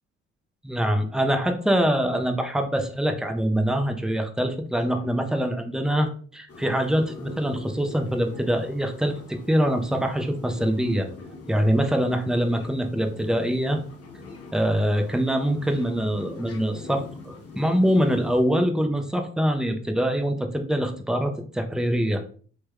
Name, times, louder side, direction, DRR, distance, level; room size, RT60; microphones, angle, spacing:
voice 1, 0.6-11.1 11.5-13.8 14.5-22.2, equal, ahead, 5 dB, 0.6 m, -24 dB
sound 1, 6.5-18.4, left 3 dB, 45° left, 0.9 m, -43 dB
3.4 x 3.0 x 2.3 m, 0.43 s
hypercardioid pair, 45°, 33 cm